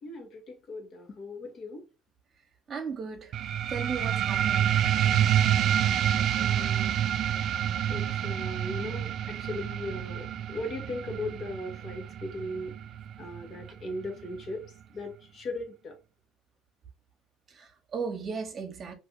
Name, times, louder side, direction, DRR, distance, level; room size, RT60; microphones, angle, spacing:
voice 1, 0.0-1.8 6.4-6.9 7.9-12.7 13.2-14.6 14.9-15.9, left 2 dB, 50° left, 1.2 m, -38 dB
voice 2, 2.7-3.3 3.7-4.7 17.5-18.9, right 5 dB, 45° right, 1.0 m, -36 dB
sound 1, 3.3-14.4, right 10 dB, 60° right, 0.3 m, -28 dB
2.6 x 2.4 x 3.8 m
supercardioid pair, 85°, 0 cm